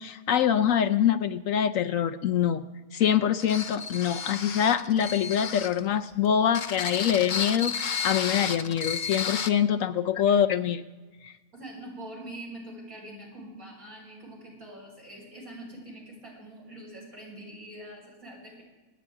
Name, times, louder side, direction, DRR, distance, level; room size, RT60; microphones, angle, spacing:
voice 1, 0.0-2.7 2.9-10.8 11.2-11.3, left 9 dB, 70° left, 10 dB, 0.9 m, -25 dB
sound 1, 3.4-5.8 6.5-9.5, left 6 dB, 50° left, 0.6 m, -32 dB
voice 2, 11.5-18.6, right 1 dB, 65° right, -4 dB, 5.7 m, -44 dB
27.5 x 9.4 x 3.7 m, 1.2 s
omnidirectional pair, 1.6 m